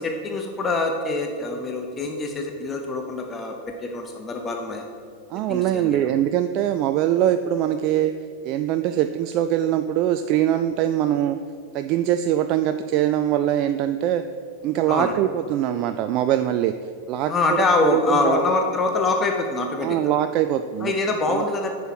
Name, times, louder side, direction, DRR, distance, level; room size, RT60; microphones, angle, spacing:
voice 1, 0.0-4.8 5.5-6.1 14.9-15.1 17.3-20.0 20.8-21.7, left 3 dB, 20° left, 4 dB, 0.8 m, -24 dB
voice 2, 5.3-8.1 8.4-11.4 11.7-14.2 14.6-16.7 17.1-18.4 19.8-20.9 21.3-21.5, right 11 dB, 40° right, 9 dB, 0.3 m, -22 dB
9.2 x 5.5 x 6.1 m, 2.4 s
figure-of-eight pair, 90°, 0 cm